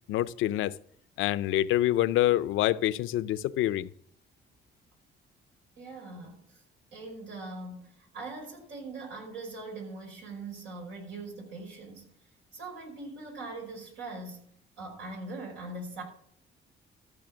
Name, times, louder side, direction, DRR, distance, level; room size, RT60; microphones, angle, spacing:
voice 1, 0.1-0.7 1.2-3.9, left 14 dB, 90° left, 0.6 m, -26 dB
voice 2, 5.8-6.6 6.9-12.2 12.5-16.0, right 2 dB, 90° right, 5.3 m, -41 dB
14.5 x 6.7 x 6.2 m
cardioid pair, 90°, 20 cm